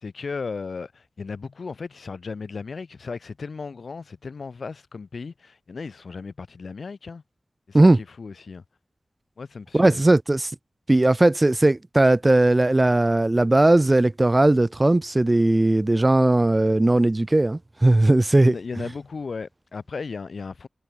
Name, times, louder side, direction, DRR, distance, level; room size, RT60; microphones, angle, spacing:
voice 1, 0.0-7.2 7.7-8.6 9.4-10.0 18.4-20.7, left 4 dB, 80° left, 5.2 m, -35 dB
voice 2, 9.7-10.5 10.9-18.5, right 2 dB, 30° right, 1.1 m, -18 dB
cardioid pair, 55°, 0 cm